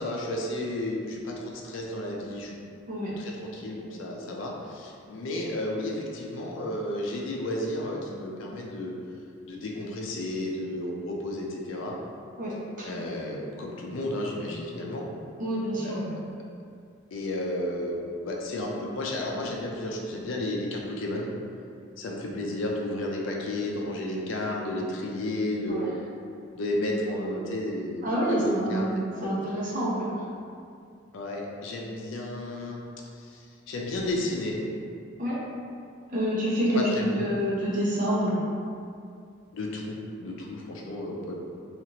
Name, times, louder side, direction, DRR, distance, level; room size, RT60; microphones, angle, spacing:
voice 1, 0.0-2.6 3.2-8.9 9.5-12.0 12.8-15.0 15.8-16.1 17.1-21.3 22.0-25.8 26.6-28.9 29.2-29.4 31.1-32.8 33.3-34.6 36.8-37.5 39.5-41.4, left 1 dB, 70° left, -1 dB, 0.4 m, -32 dB
voice 2, 15.4-16.1 25.7-25.9 28.0-30.1 35.2-35.4 36.1-38.4, equal, 40° right, -7 dB, 0.7 m, -27 dB
2.8 x 2.4 x 2.8 m, 2.3 s
head